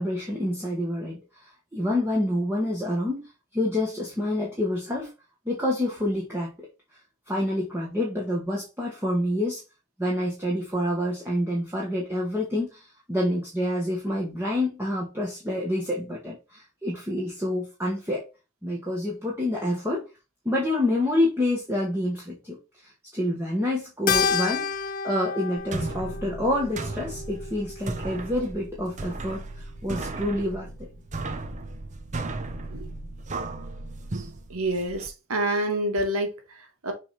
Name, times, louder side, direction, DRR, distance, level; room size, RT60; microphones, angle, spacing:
voice 1, 0.0-5.1 5.4-6.5 7.3-9.6 10.0-18.3 18.6-20.0 20.4-24.7 25.0-30.7, left 1 dB, 10° right, 1.4 m, -28 dB
Keyboard (musical), 24.1-28.7, left 6 dB, 40° left, 0.5 m, -30 dB
sound 1, 25.6-35.1, right 2 dB, 35° right, 0.7 m, -35 dB
voice 2, 34.5-36.9, right 1 dB, 75° right, 1.7 m, -28 dB
6.7 x 3.4 x 4.2 m
head